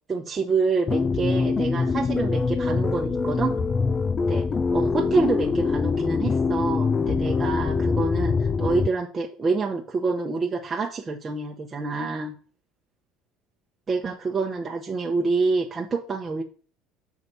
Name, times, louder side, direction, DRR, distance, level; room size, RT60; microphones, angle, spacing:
voice 1, 0.1-3.6 4.2-4.4 4.7-12.3 13.9-16.4, right 4 dB, 25° right, 0 dB, 0.9 m, -27 dB
sound 1, 0.9-8.9, left 4 dB, 30° left, 0.5 m, -24 dB
6.8 x 4.8 x 5.5 m, 0.40 s
supercardioid pair, 105°, 0 cm